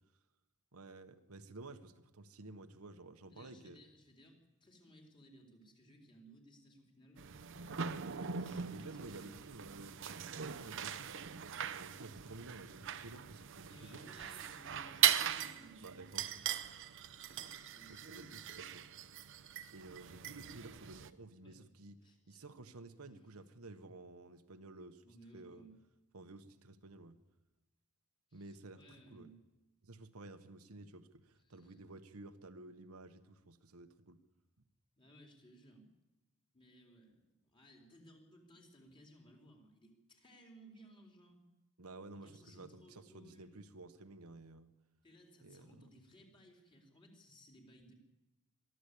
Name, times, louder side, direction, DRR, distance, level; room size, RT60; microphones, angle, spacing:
voice 1, 0.7-3.8 7.9-8.3 8.7-11.1 11.7-14.0 15.8-16.4 17.9-18.9 19.7-22.0 22.3-25.0 25.3-25.7 26.1-27.2 28.3-29.3 29.8-34.2 41.8-44.7 45.4-45.9, right 2 dB, 90° right, 8 dB, 1.3 m, -53 dB
voice 2, 3.3-7.2 8.4-9.4 13.7-16.0 17.2-18.4 21.4-21.7 22.0-22.4 25.0-25.8 28.3-29.4 31.4-31.8 35.0-35.8 36.5-41.4 42.1-43.5 45.0-47.9, right 1 dB, 25° left, 1 dB, 4.2 m, -61 dB
sound 1, 7.2-21.1, right 9 dB, 60° right, 0.8 m, -39 dB
22.5 x 14.5 x 8.5 m, 1.0 s
head